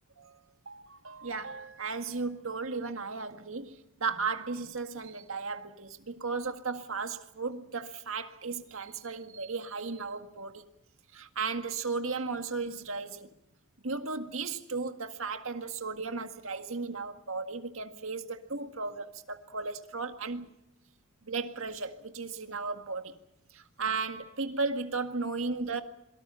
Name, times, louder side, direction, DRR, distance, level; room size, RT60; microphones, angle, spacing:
voice 1, 0.2-10.7 11.1-13.3 13.8-20.5 21.3-23.2 23.5-25.8, right 4 dB, 65° right, 2.0 m, -35 dB
27.0 x 23.5 x 5.8 m
head